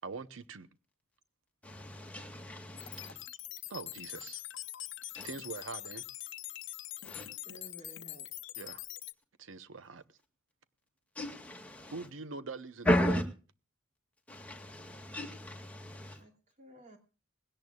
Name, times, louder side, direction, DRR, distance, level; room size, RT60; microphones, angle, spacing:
voice 1, 0.0-0.7 3.7-4.4 5.2-6.0 8.6-8.8 9.4-10.0 11.9-12.9, right 4 dB, 85° right, 0.9 m, -43 dB
voice 2, 1.6-3.2 5.1-5.3 7.0-7.3 11.1-12.1 12.8-13.2 14.3-16.2, left 1 dB, 5° left, 2.1 m, -34 dB
sound 1, 2.8-9.1, left 15 dB, 70° left, 0.8 m, -44 dB
voice 3, 7.4-8.3 16.0-16.3 16.6-17.0, right 1 dB, 40° right, 3.0 m, -54 dB
20.0 x 17.0 x 2.4 m
head